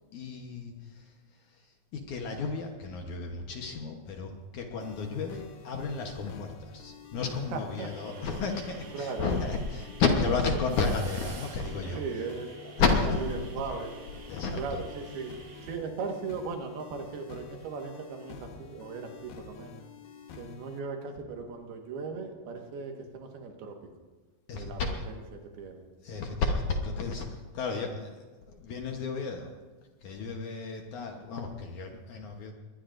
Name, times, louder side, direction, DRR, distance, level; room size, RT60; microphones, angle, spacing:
voice 1, 0.1-1.1 1.5-1.6 1.9-12.0 12.6-13.2 14.3-14.8 24.5-25.0 26.0-29.5 30.0-32.5, left 4 dB, 65° left, 2 dB, 2.1 m, -32 dB
sound 1, 4.8-20.8, left 7 dB, 80° left, 3.1 m, -49 dB
voice 2, 7.5-7.9 8.9-9.3 11.9-12.5 13.0-14.0 14.6-15.3 15.6-19.8 20.3-23.8 24.5-24.8 25.1-25.8, right 4 dB, 80° right, 3 dB, 3.4 m, -38 dB
sound 2, 7.8-15.8, right 4 dB, 55° right, 1.7 m, -50 dB
22.0 x 19.5 x 2.6 m, 1.3 s
omnidirectional pair, 4.5 m